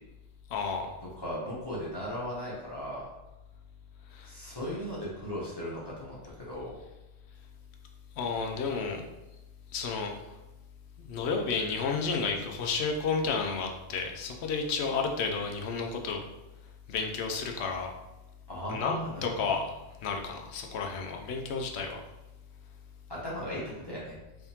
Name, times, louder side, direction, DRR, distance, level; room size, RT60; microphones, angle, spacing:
voice 1, 0.5-0.9 4.1-4.3 8.2-9.0 9.7-10.4 11.0-16.2 16.9-17.9 18.7-19.6 20.0-22.0, left 5 dB, 75° left, 3 dB, 0.9 m, -31 dB
voice 2, 1.2-3.1 4.2-6.2 6.5-6.7 18.5-19.5 23.1-24.2, equal, 25° left, -8 dB, 0.9 m, -37 dB
3.5 x 3.4 x 2.8 m, 1.0 s
omnidirectional pair, 1.1 m